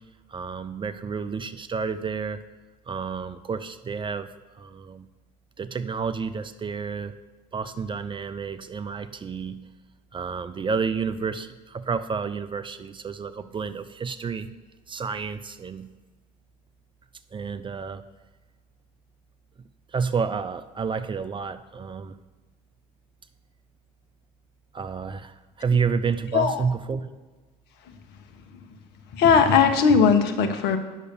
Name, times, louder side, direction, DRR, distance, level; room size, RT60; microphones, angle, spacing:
voice 1, 0.3-2.4 2.9-4.3 4.5-5.1 5.6-7.1 7.5-9.6 10.1-14.5 14.9-15.9 17.3-18.0 19.9-22.2 24.7-27.1, right 5 dB, 25° right, 12 dB, 0.5 m, -30 dB
voice 2, 26.3-26.6 29.1-30.8, left 6 dB, 55° left, 7 dB, 1.1 m, -18 dB
8.7 x 6.5 x 6.9 m, 1.2 s
hypercardioid pair, 65°, 20 cm